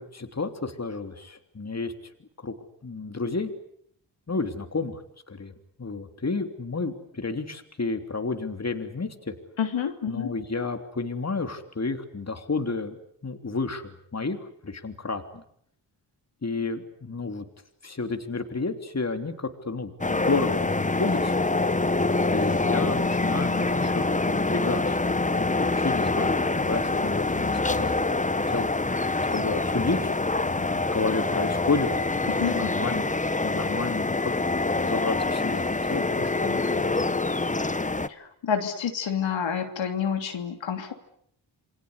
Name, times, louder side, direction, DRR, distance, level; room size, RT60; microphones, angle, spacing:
voice 1, 0.0-1.9 2.4-2.5 2.8-3.5 4.3-5.0 5.3-5.5 5.8-9.3 10.1-13.0 13.2-14.4 14.6-15.4 16.4-17.4 17.8-21.5 22.3-27.9 28.5-28.7 29.3-36.9, left 3 dB, 35° left, 7 dB, 3.3 m, -31 dB
voice 2, 9.6-10.3 32.3-32.7 38.1-40.9, left 7 dB, 85° left, 5 dB, 3.1 m, -28 dB
sound 1, 20.0-38.1, left 3 dB, 15° left, 1.2 m, -25 dB
28.0 x 22.5 x 8.3 m, 0.67 s
cardioid pair, 70°, 45 cm